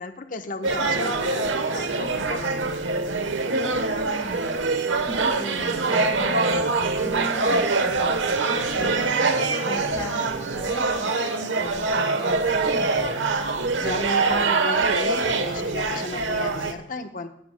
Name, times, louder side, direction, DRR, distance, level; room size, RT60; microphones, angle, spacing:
voice 1, 0.0-2.8 13.7-17.3, left 2 dB, 45° left, 6 dB, 1.0 m, -34 dB
sound 1, 0.6-16.7, right 3 dB, 85° right, 1.1 m, -24 dB
voice 2, 3.8-13.0, equal, 20° left, -4 dB, 5.7 m, -37 dB
19.0 x 12.0 x 2.2 m, 0.70 s
head